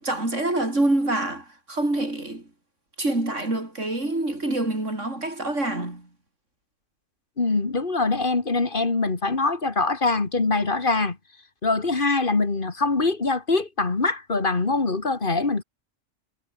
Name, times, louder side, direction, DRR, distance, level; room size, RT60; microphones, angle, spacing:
voice 1, 0.0-2.5 3.0-6.1, right 2 dB, 90° right, 6.6 m, -26 dB
voice 2, 7.4-11.2 11.6-15.6, left 3 dB, 45° left, 2.2 m, -23 dB
omnidirectional pair, 1.2 m